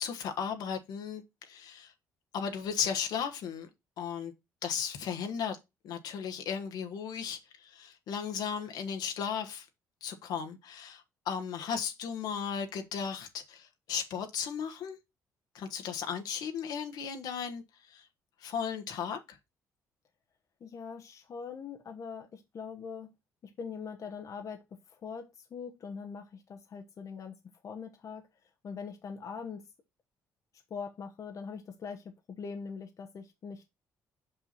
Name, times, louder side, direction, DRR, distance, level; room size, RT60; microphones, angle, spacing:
voice 1, 0.0-1.9 2.3-3.7 4.0-4.3 4.6-5.6 5.8-9.7 10.0-15.0 15.5-18.1 18.4-19.4, left 7 dB, 75° left, 1.3 m, -36 dB
voice 2, 20.6-23.1 23.4-27.4 27.6-28.3 28.6-29.7 30.7-33.7, left 5 dB, 50° left, 1.0 m, -42 dB
5.6 x 5.6 x 4.1 m
supercardioid pair, 75°, 7 cm